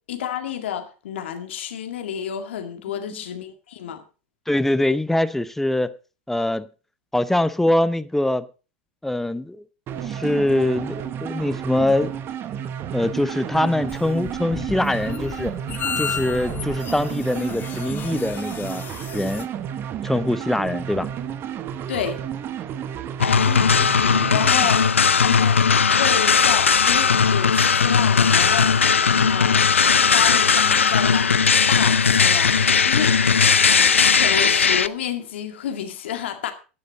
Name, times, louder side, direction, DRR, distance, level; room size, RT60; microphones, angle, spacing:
voice 1, 0.1-4.0 21.9-22.2 24.3-25.6 26.0-31.4 31.7-32.6 32.8-33.2 34.1-36.5, left 9 dB, 70° left, 2.0 m, -30 dB
voice 2, 4.5-5.9 6.3-6.7 7.1-8.5 9.0-9.6 10.0-12.2 12.9-15.5 16.0-18.8 19.1-19.5 20.0-21.1, left 1 dB, 5° left, 0.7 m, -23 dB
sound 1, 9.9-24.7, right 9 dB, 35° right, 1.1 m, -31 dB
sound 2, 13.9-19.4, left 7 dB, 30° left, 1.1 m, -33 dB
sound 3, 23.2-34.9, left 6 dB, 85° left, 0.5 m, -17 dB
14.5 x 9.8 x 4.1 m
hypercardioid pair, 90°, 7 cm